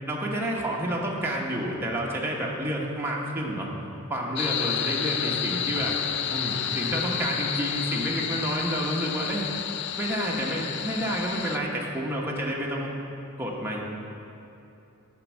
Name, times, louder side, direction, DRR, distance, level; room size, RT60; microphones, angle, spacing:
voice 1, 0.1-3.7 4.1-5.9 6.3-9.4 10.0-12.9 13.4-13.8, right 1 dB, 10° right, -3 dB, 1.0 m, -29 dB
sound 1, 4.3-11.6, left 9 dB, 55° left, 0.4 m, -30 dB
9.5 x 5.3 x 7.1 m, 2.9 s
head